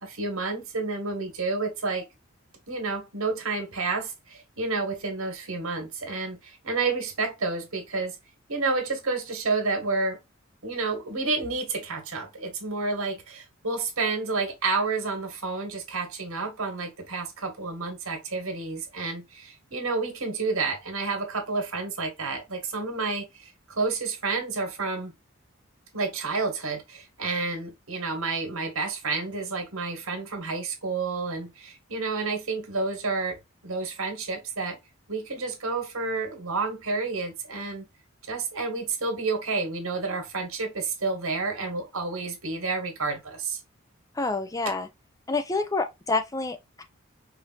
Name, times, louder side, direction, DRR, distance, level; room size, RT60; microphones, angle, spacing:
voice 1, 0.0-2.1 2.7-8.2 8.5-10.2 10.6-25.1 25.9-34.8 35.1-37.9 38.3-43.6, right 3 dB, 85° right, 1.7 m, -30 dB
voice 2, 44.2-44.9 45.3-46.8, left 3 dB, 15° left, 0.4 m, -28 dB
5.0 x 2.7 x 2.5 m
head